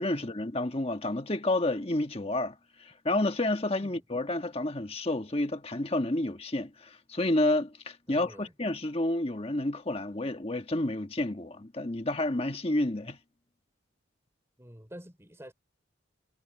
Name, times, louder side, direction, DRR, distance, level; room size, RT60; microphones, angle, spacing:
voice 1, 0.0-2.5 2.8-13.2, left 1 dB, 30° left, 1.4 m, -30 dB
voice 2, 8.1-8.5 14.6-15.5, equal, 15° right, 3.2 m, -49 dB
head